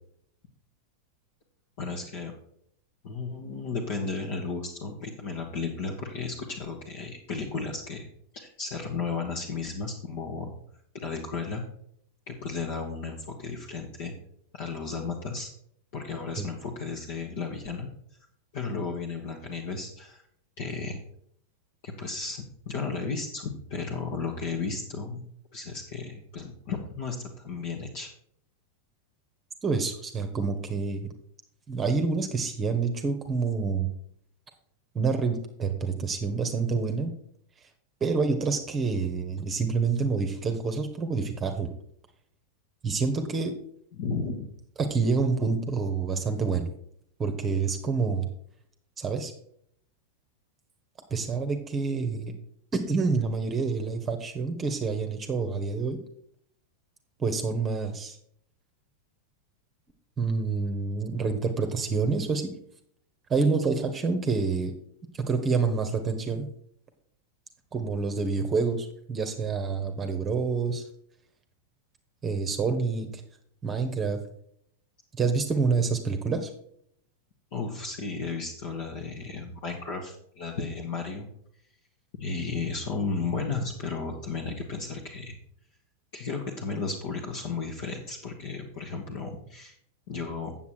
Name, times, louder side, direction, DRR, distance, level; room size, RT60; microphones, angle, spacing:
voice 1, 1.8-2.3 3.0-8.1 8.3-10.5 10.9-11.6 12.3-14.1 14.5-15.5 15.9-17.9 18.5-20.2 20.6-21.0 21.8-25.2 25.5-28.1 44.0-44.5 77.5-81.3 82.2-85.4 86.1-89.7 90.1-90.6, left 4 dB, 50° left, 0 dB, 1.3 m, -34 dB
voice 2, 29.6-31.1 31.7-33.9 34.9-37.1 38.0-41.7 42.8-43.5 44.8-46.7 47.2-48.3 49.0-49.3 51.1-52.3 52.7-56.0 57.2-58.2 60.2-62.5 63.3-64.7 65.3-66.5 67.7-70.9 72.2-73.1 73.6-74.2 75.2-76.5, right 4 dB, 20° right, 6 dB, 1.0 m, -27 dB
8.4 x 7.2 x 4.5 m, 0.67 s
figure-of-eight pair, 90°, 0 cm